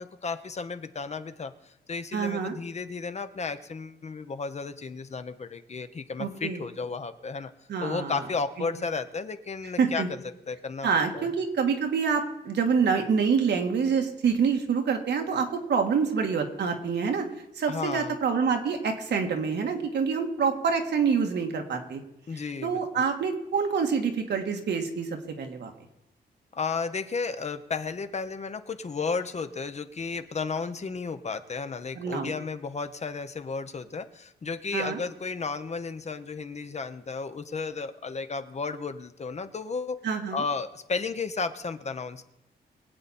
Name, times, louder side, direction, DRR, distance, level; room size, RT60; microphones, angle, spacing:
voice 1, 0.0-7.5 7.8-10.9 11.1-11.3 17.7-18.2 22.3-22.9 26.5-40.0 40.3-42.3, left 4 dB, 40° left, 10 dB, 0.9 m, -33 dB
voice 2, 2.1-2.5 6.2-6.6 7.7-8.1 9.8-10.1 10.8-17.3 17.6-22.0 22.6-25.7 32.0-32.3 34.7-35.0 40.0-40.4, right 6 dB, 90° right, 3 dB, 1.8 m, -26 dB
23.0 x 8.6 x 4.3 m, 0.88 s
wide cardioid pair, 110°, 17 cm